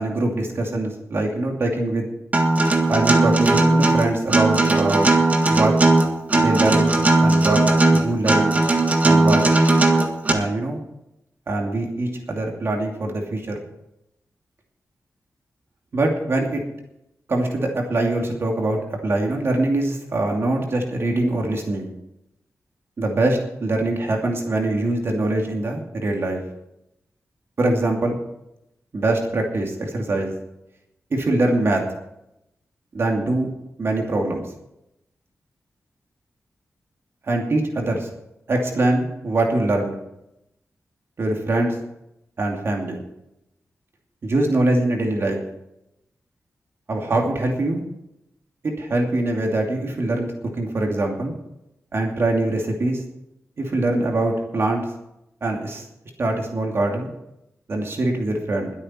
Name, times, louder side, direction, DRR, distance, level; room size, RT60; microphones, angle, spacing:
voice 1, 0.0-2.1 2.9-5.1 5.5-5.7 6.3-7.6 7.9-8.5 9.0-9.4 10.3-10.8 11.5-13.6 15.9-16.6 17.3-21.9 23.0-26.4 27.6-28.2 28.9-30.3 31.1-31.8 32.9-33.5 33.8-34.4 37.2-38.1 38.5-40.0 41.2-41.8 42.4-43.0 44.2-45.4 46.9-47.8 48.6-50.3 50.6-51.3 51.9-53.0 53.6-54.8 55.4-55.8 56.2-57.1 57.7-58.7, right 2 dB, 50° right, 1 dB, 2.6 m, -23 dB
Acoustic guitar, 2.3-10.3, right 2 dB, 30° right, 1.6 m, -17 dB
21.5 x 8.7 x 4.5 m, 0.84 s
wide cardioid pair, 160°, 5 cm